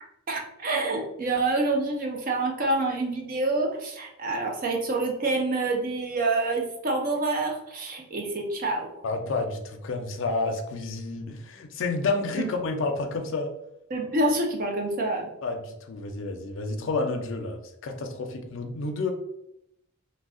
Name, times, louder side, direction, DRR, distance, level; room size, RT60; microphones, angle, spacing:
voice 1, 0.3-9.0 12.4-12.5 13.9-15.3, right 2 dB, 40° right, 1 dB, 0.5 m, -27 dB
voice 2, 9.0-13.5 15.4-19.1, left 3 dB, 60° left, 4 dB, 0.4 m, -30 dB
2.3 x 2.1 x 3.5 m, 0.82 s
head